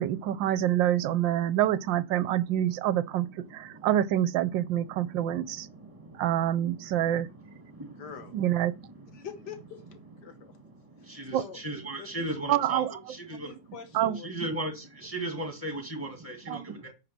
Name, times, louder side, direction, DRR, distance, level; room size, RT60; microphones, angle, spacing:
voice 1, 0.0-3.3 3.5-5.7 6.1-7.3 8.3-8.7 11.3-11.4 12.5-12.9 13.9-14.2 16.5-16.8, right 12 dB, 75° right, 1.3 m, -26 dB
voice 2, 8.0-8.4 9.0-10.6 11.0-11.6 12.0-12.3 13.4-14.3, left 7 dB, 60° left, 1.8 m, -45 dB
voice 3, 11.2-12.8 13.3-13.5 14.2-14.7 15.0-16.9, right 1 dB, 15° right, 2.4 m, -35 dB
9.3 x 3.7 x 5.9 m
omnidirectional pair, 2.2 m